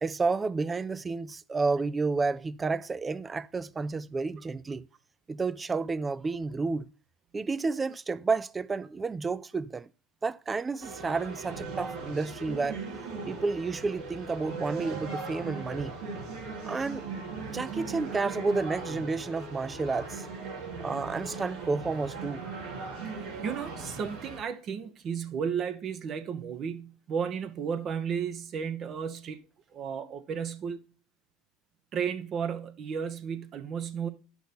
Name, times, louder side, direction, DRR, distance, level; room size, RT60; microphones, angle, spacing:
voice 1, 0.0-4.9 5.3-6.9 7.3-9.9 10.2-12.8 13.3-16.0 16.6-17.1 17.5-20.3 20.8-22.4, right 4 dB, 20° right, 0.4 m, -31 dB
sound 1, 10.8-24.4, right 4 dB, 75° right, 3.4 m, -39 dB
voice 2, 23.4-29.4 29.7-30.8 31.9-34.1, right 7 dB, 45° right, 1.0 m, -33 dB
10.0 x 5.9 x 4.3 m
hypercardioid pair, 80°, 0 cm